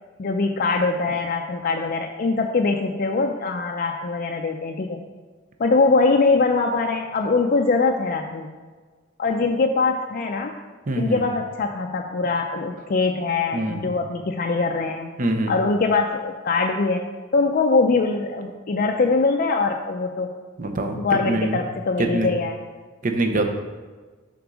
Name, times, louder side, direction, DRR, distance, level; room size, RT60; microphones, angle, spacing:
voice 1, 0.2-5.0 5.6-8.5 9.2-10.5 11.0-15.1 15.5-17.0 17.3-20.3 21.0-22.6, left 3 dB, 45° left, 3 dB, 0.4 m, -22 dB
voice 2, 10.9-11.2 13.5-13.9 15.2-15.6 20.6-21.6 22.0-22.3 23.0-23.4, right 2 dB, 40° right, 5 dB, 0.8 m, -24 dB
7.0 x 3.9 x 6.1 m, 1.4 s
head